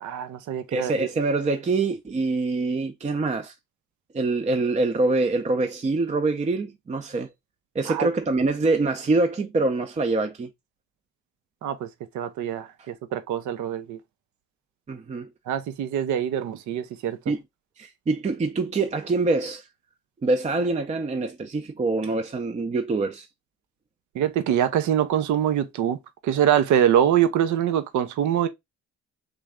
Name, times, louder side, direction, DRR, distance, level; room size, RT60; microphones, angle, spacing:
voice 1, 0.0-1.1 7.9-8.1 11.6-11.9 12.1-14.0 15.5-17.2 24.1-26.0 26.2-28.5, right 10 dB, 75° right, 0.6 m, -24 dB
voice 2, 0.7-3.5 4.1-7.3 7.7-10.5 12.8-12.9 14.9-15.3 17.3-17.4 17.8-19.6 20.2-23.3, right 3 dB, 25° right, 0.5 m, -25 dB
3.4 x 3.1 x 3.5 m
cardioid pair, 90°, 30 cm